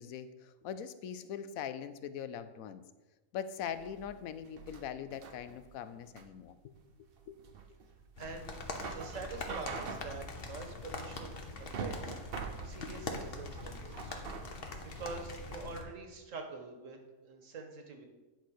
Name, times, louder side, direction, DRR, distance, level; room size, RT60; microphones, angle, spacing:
voice 1, 0.0-2.8 3.3-6.7 7.3-7.4, left 8 dB, 85° left, 12 dB, 1.0 m, -42 dB
sound 1, 3.7-15.3, right 5 dB, 50° right, 0.8 m, -45 dB
sound 2, 8.2-15.8, left 3 dB, 45° left, 1.1 m, -43 dB
voice 2, 8.2-14.1 14.8-18.1, right 4 dB, 70° right, 4 dB, 1.6 m, -46 dB
10.5 x 4.0 x 6.3 m, 1.2 s
omnidirectional pair, 1.4 m